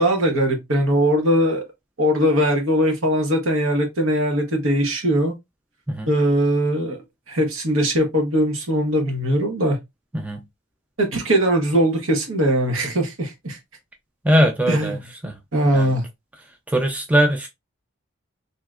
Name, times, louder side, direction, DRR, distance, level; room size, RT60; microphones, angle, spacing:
voice 1, 0.0-1.6 2.0-5.3 6.1-7.0 7.3-9.8 11.0-13.6 14.7-15.0 15.5-16.0, equal, 65° right, 1.1 m, -20 dB
voice 2, 14.2-15.0 15.2-15.3 15.7-15.9 16.7-17.5, equal, 5° right, 0.3 m, -20 dB
3.2 x 2.8 x 2.4 m
head